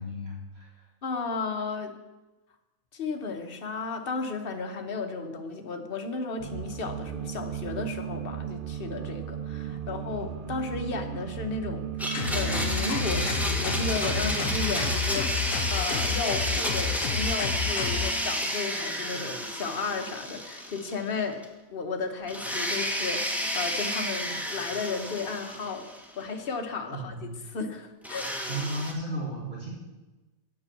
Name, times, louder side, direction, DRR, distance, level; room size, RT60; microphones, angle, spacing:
voice 1, 0.0-0.9 26.9-27.4 28.5-29.7, right 1 dB, 45° right, -5 dB, 2.4 m, -34 dB
voice 2, 1.0-1.9 2.9-21.4 21.7-25.9 26.2-28.3, left 4 dB, 45° left, 5 dB, 1.1 m, -34 dB
sound 1, 6.4-15.0, right 9 dB, 70° right, 0.5 m, -36 dB
Domestic sounds home sounds, 12.0-21.2 21.4-21.5 22.3-26.2 28.0-28.9, equal, ahead, 0.9 m, -31 dB
sound 2, 12.1-18.1, left 7 dB, 75° left, 1.1 m, -31 dB
8.7 x 6.1 x 7.0 m, 1.1 s
omnidirectional pair, 1.5 m